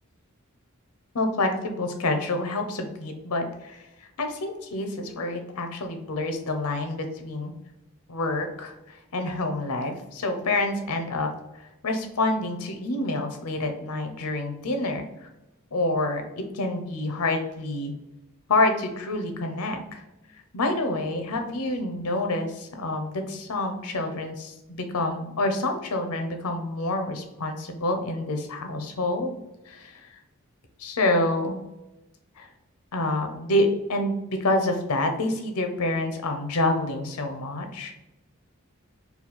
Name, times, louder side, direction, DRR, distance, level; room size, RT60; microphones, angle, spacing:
voice 1, 1.1-3.8 4.2-7.5 8.1-11.3 11.8-15.3 15.7-17.9 18.5-20.0 20.5-29.4 29.7-30.0 30.8-31.6 32.4-32.5 32.9-37.9, left 2 dB, 90° left, 6 dB, 0.7 m, -27 dB
4.1 x 2.3 x 4.2 m, 0.94 s
head